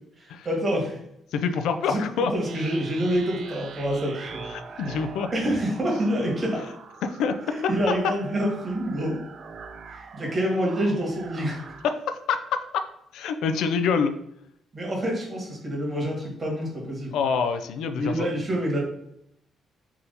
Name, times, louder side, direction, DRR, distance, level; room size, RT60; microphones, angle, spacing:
voice 1, 0.2-1.0 1.9-2.0 2.3-4.5 5.3-6.6 7.5-9.2 9.9-11.6 14.7-17.1 17.9-18.8, equal, 35° right, -2 dB, 1.5 m, -27 dB
voice 2, 1.3-2.3 4.5-5.3 7.0-7.6 11.8-12.8 13.1-14.2 17.1-18.3, left 6 dB, 80° left, 8 dB, 0.3 m, -26 dB
sound 1, 2.4-11.9, right 5 dB, 60° right, 0.4 m, -43 dB
3.5 x 2.8 x 3.9 m, 0.76 s
cardioid pair, 90°, 0 cm